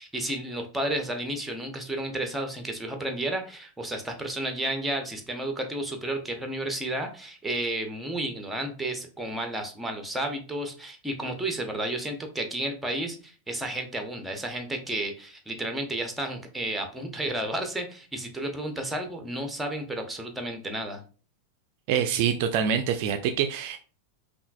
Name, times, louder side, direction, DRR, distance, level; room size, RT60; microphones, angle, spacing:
voice 1, 0.0-21.0, right 1 dB, 5° right, 4 dB, 0.7 m, -32 dB
voice 2, 21.9-23.8, right 8 dB, 45° right, 7 dB, 0.3 m, -25 dB
5.4 x 2.3 x 2.3 m, 0.37 s
figure-of-eight pair, 90°, 0 cm